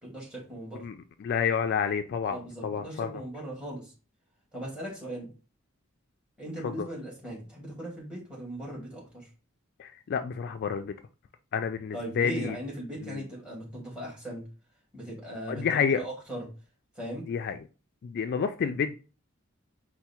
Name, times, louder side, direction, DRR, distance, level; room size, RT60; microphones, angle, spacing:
voice 1, 0.0-0.8 2.3-3.9 4.5-5.3 6.4-9.3 11.9-14.4 14.9-16.5 17.0-17.3, right 1 dB, 5° right, 2.0 m, -38 dB
voice 2, 0.8-3.2 6.6-6.9 9.8-11.0 11.5-12.6 13.0-13.3 15.5-16.0 17.3-17.6 18.0-18.9, left 6 dB, 50° left, 0.3 m, -29 dB
4.5 x 2.2 x 4.2 m
head